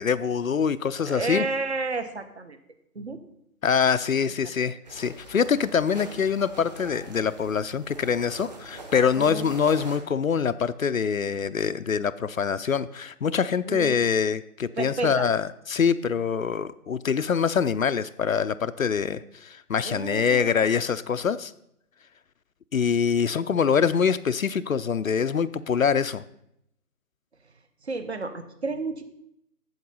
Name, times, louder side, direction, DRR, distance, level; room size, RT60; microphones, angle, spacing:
voice 1, 0.0-1.5 3.6-21.5 22.7-26.2, left 6 dB, 65° left, 14 dB, 0.5 m, -24 dB
voice 2, 1.1-2.6 2.9-3.2 9.2-9.5 13.6-14.0 14.8-15.3 19.8-20.6 27.8-29.0, right 3 dB, 45° right, 9 dB, 0.9 m, -31 dB
sound 1, 4.8-10.0, right 2 dB, 30° right, 1.0 m, -43 dB
7.9 x 7.6 x 5.3 m, 0.77 s
figure-of-eight pair, 155°, 45 cm